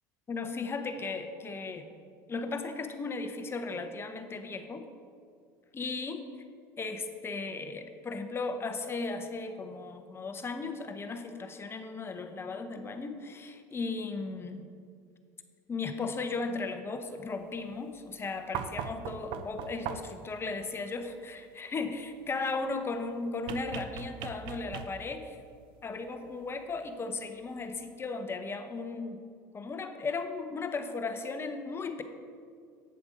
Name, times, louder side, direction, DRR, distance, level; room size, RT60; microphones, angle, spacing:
voice 1, 0.3-1.9 2.3-4.9 5.7-6.2 6.8-14.7 15.7-25.4 25.8-29.2 29.5-32.0, left 3 dB, 25° left, 8 dB, 0.8 m, -36 dB
sound 1, 18.5-20.3 23.5-25.2 26.8-26.9, right 8 dB, 60° right, 0.6 m, -39 dB
8.8 x 7.0 x 5.2 m, 2.2 s
supercardioid pair, 95°, 10 cm